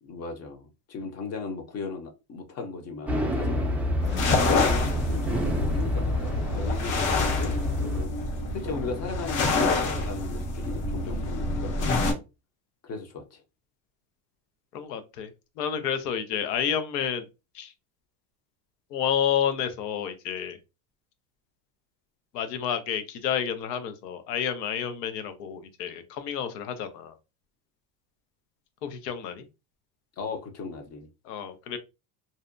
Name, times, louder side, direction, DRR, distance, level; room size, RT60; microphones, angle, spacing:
voice 1, 0.0-3.8 4.4-8.1 8.5-11.8 12.8-13.4 30.2-31.1, left 4 dB, 35° left, 0.6 m, -37 dB
sound 1, 3.1-8.1, left 1 dB, 5° right, 0.3 m, -28 dB
sound 2, 4.0-12.1, left 3 dB, 65° left, 1.3 m, -27 dB
voice 2, 14.7-15.3 15.6-17.3 17.5-17.7 18.9-20.6 22.3-27.1 28.8-29.4 31.2-31.8, left 8 dB, 90° left, 0.7 m, -30 dB
2.7 x 2.1 x 2.4 m
supercardioid pair, 105°, 47 cm